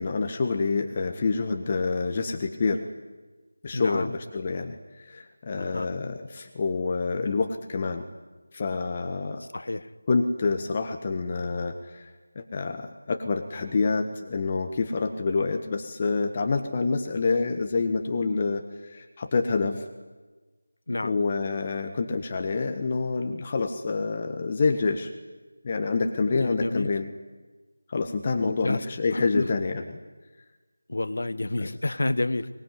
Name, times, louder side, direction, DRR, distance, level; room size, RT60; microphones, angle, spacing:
voice 1, 0.0-2.8 3.6-8.0 8.5-9.4 10.1-19.8 21.0-25.1 25.6-27.1 27.9-30.0 31.6-31.7, left 4 dB, 30° left, 5 dB, 1.5 m, -27 dB
voice 2, 3.7-4.1 5.6-6.0 9.4-9.9 20.9-21.1 26.4-26.9 28.4-28.8 29.1-29.5 30.9-32.5, left 2 dB, 60° left, 13 dB, 1.4 m, -30 dB
24.5 x 19.5 x 9.7 m, 1.3 s
figure-of-eight pair, 165°, 0 cm